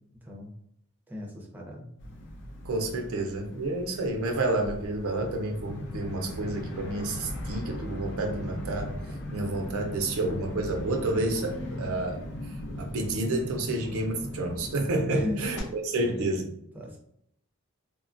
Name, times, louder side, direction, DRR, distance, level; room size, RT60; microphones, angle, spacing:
voice 1, 0.2-0.5 1.1-1.9 15.1-15.4 15.9-17.0, left 1 dB, 10° right, -1 dB, 0.5 m, -37 dB
sound 1, 2.0-14.9, equal, 55° left, 0.6 m, -42 dB
voice 2, 2.7-9.0 9.3-12.2 12.8-15.6 15.8-16.4, right 2 dB, 70° right, 3 dB, 0.5 m, -29 dB
sound 2, 5.6-15.6, left 1 dB, 90° left, 0.8 m, -40 dB
3.2 x 2.1 x 2.5 m, 0.73 s
head